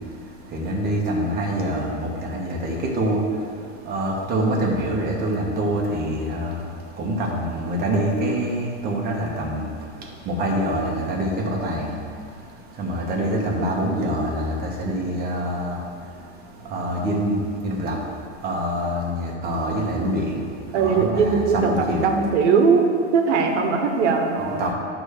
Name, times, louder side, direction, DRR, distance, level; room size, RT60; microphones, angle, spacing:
voice 1, 0.5-3.2 3.9-6.6 7.0-9.6 10.3-12.0 12.8-15.8 16.7-17.4 17.6-18.0 18.4-20.4 20.8-22.1 24.6-24.7, right 1 dB, 30° right, -2 dB, 1.3 m, -25 dB
voice 2, 20.7-21.7 22.0-24.7, right 5 dB, 90° right, 4 dB, 1.2 m, -20 dB
11.0 x 3.6 x 6.5 m, 2.3 s
supercardioid pair, 165°, 34 cm